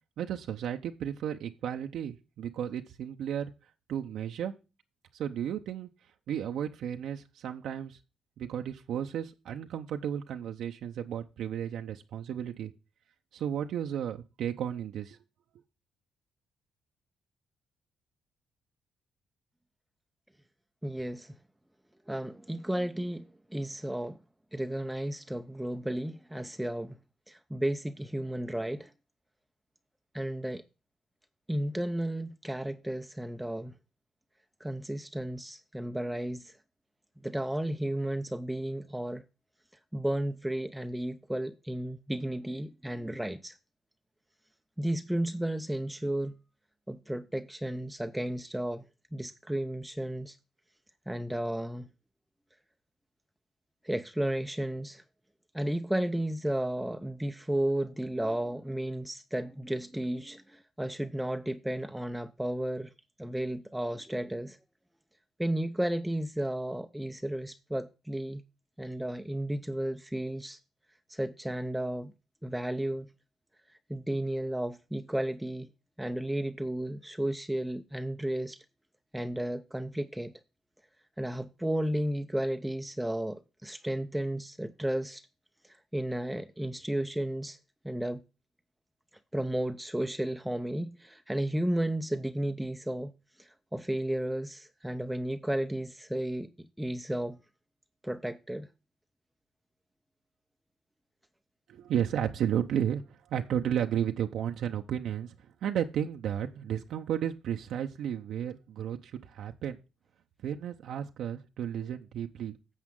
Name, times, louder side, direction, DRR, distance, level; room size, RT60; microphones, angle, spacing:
voice 1, 0.2-3.5 3.9-4.5 5.1-5.9 6.3-8.0 8.4-12.7 13.3-15.2 101.7-105.3 105.6-109.8 110.4-112.6, right 9 dB, 75° right, 0.8 m, -33 dB
voice 2, 20.8-21.3 22.1-24.2 24.5-27.0 27.3-28.9 30.1-30.6 31.5-33.7 34.6-36.6 37.2-39.2 39.9-43.6 44.8-46.3 46.9-48.8 49.1-50.4 51.1-51.9 53.8-55.0 55.5-62.9 63.2-64.6 65.4-68.4 68.8-70.6 71.1-72.1 72.4-73.1 73.9-75.7 76.0-78.6 79.1-80.3 81.2-85.2 85.6-87.6 87.8-88.2 89.3-93.1 93.4-97.4 98.0-98.7, right 1 dB, 5° right, 0.6 m, -33 dB
11.0 x 7.3 x 3.7 m
cardioid pair, 90°, 0 cm